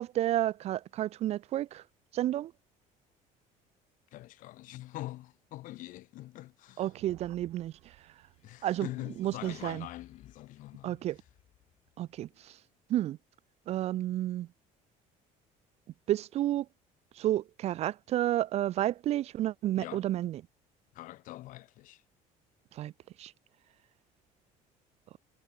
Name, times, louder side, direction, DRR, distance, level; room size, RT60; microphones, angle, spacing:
voice 1, 0.0-1.8 2.1-2.5 6.8-8.0 8.6-8.9 9.2-9.9 10.8-11.2 12.0-12.6 12.9-13.2 13.7-14.5 16.1-16.7 17.2-20.4 22.7-22.9 23.2-23.3, right 13 dB, 45° right, 0.4 m, -31 dB
voice 2, 4.1-6.9 8.4-11.0 19.8-20.1 20.9-22.0, left 16 dB, 60° left, 0.8 m, -44 dB
sound 1, 6.8-11.1, right 22 dB, 85° right, 6.1 m, -59 dB
sound 2, 8.3-12.7, left 11 dB, 45° left, 1.5 m, -59 dB
cardioid pair, 150°, 15 cm